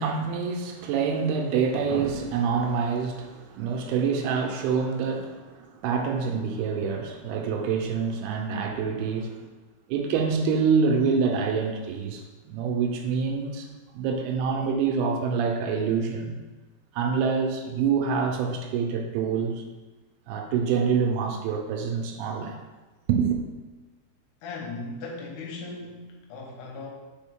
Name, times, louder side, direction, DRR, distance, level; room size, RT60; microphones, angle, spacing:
voice 1, 0.0-9.4 9.9-13.7 13.9-16.4 16.9-19.6 20.3-22.6 23.1-23.4, right 5 dB, 80° right, 3 dB, 2.5 m, -26 dB
voice 2, 24.4-26.9, left 3 dB, 80° left, -1 dB, 3.0 m, -37 dB
6.1 x 4.6 x 3.6 m, 1.2 s
omnidirectional pair, 4.8 m